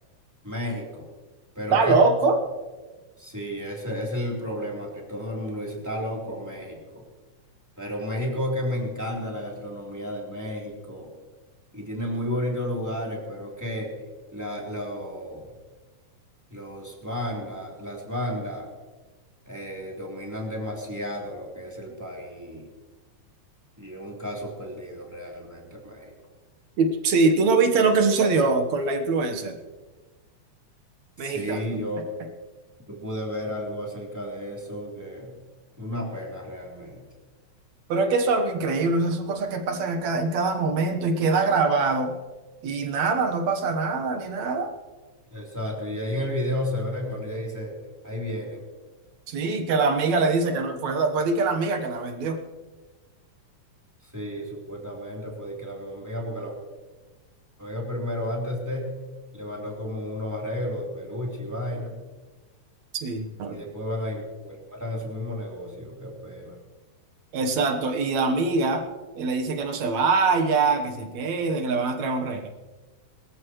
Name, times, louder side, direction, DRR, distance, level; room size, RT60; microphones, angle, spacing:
voice 1, 0.4-1.1 1.5-2.0 3.2-7.0 7.8-11.1 11.7-13.9 14.3-15.5 16.5-18.7 19.5-22.7 23.8-26.1 31.2-32.1 32.9-35.3 35.8-37.0 45.3-47.8 48.0-48.6 54.0-56.5 57.6-58.9 59.3-61.9 63.4-66.6, left 1 dB, 5° right, -3 dB, 3.2 m, -32 dB
voice 2, 1.7-2.4 26.8-29.5 31.2-31.6 37.9-42.1 42.6-44.7 49.3-52.4 62.9-63.6 67.3-68.8 69.2-72.5, right 4 dB, 70° right, 5 dB, 2.5 m, -23 dB
22.5 x 14.0 x 3.1 m, 1.3 s
omnidirectional pair, 3.3 m